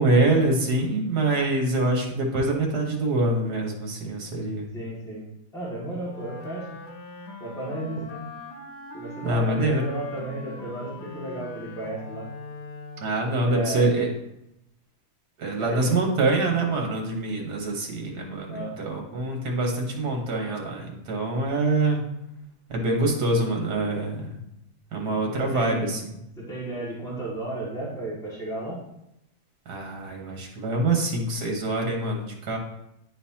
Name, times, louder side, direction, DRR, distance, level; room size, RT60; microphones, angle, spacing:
voice 1, 0.0-4.7 9.2-9.8 13.0-14.1 15.4-22.0 22.7-24.3 24.9-26.0 29.7-32.6, right 2 dB, 80° right, 1 dB, 1.8 m, -25 dB
voice 2, 4.7-5.2 5.5-6.7 7.4-8.2 8.9-12.3 13.4-14.0 15.6-16.0 18.5-18.7 25.4-26.0 26.4-28.8, right 2 dB, ahead, -7 dB, 1.9 m, -33 dB
Wind instrument woodwind instrument, 6.0-13.4, left 2 dB, 90° left, 1.4 m, -42 dB
9.8 x 4.0 x 2.8 m, 0.83 s
omnidirectional pair, 1.7 m